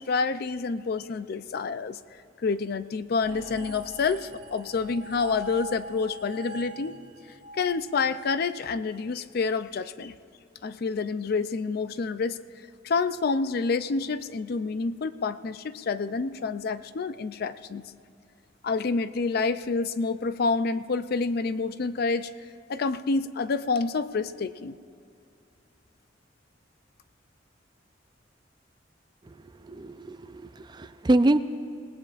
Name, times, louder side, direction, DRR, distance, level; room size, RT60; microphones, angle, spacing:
voice 1, 0.0-7.0 7.5-10.1 10.6-12.4 12.8-17.8 18.6-22.3 22.7-24.8, left 4 dB, 55° left, 13 dB, 0.4 m, -28 dB
sound 1, 3.2-8.6, right 1 dB, 80° right, 2.5 m, -43 dB
voice 2, 29.6-31.4, right 1 dB, 25° right, 11 dB, 0.4 m, -25 dB
25.0 x 18.5 x 2.5 m, 2.5 s
head